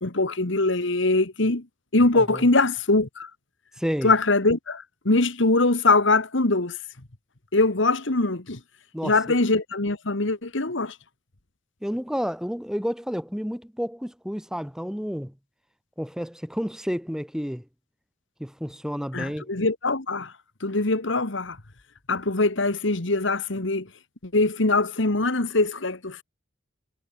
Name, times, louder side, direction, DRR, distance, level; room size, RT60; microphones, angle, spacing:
voice 1, 0.0-1.7 1.9-3.3 4.0-6.8 7.5-8.6 9.0-11.0 19.1-20.3 20.6-21.6 22.1-23.9 24.2-26.2, left 2 dB, 65° left, 1.9 m, -22 dB
voice 2, 2.1-2.5 3.8-4.1 8.9-9.4 11.8-15.3 16.0-17.6 18.4-19.5, equal, 5° right, 4.0 m, -30 dB
head